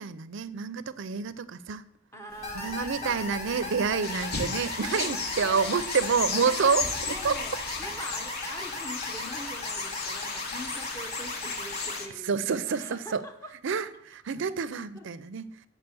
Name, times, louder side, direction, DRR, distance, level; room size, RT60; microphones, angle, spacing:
voice 1, 0.0-1.8 2.5-7.4 12.1-13.2 13.6-15.7, right 5 dB, 60° right, 14 dB, 0.5 m, -28 dB
voice 2, 2.1-3.3 3.9-4.0 4.9-5.1 5.4-5.7 6.4-13.5 14.9-15.0, equal, 15° left, 5 dB, 0.7 m, -43 dB
sound 1, 2.3-8.0, equal, 75° left, 3.3 m, -43 dB
sound 2, 2.4-12.0, left 2 dB, 30° left, 1.6 m, -37 dB
sound 3, 4.0-12.1, left 5 dB, 50° left, 0.8 m, -35 dB
7.8 x 5.0 x 6.9 m, 0.72 s
head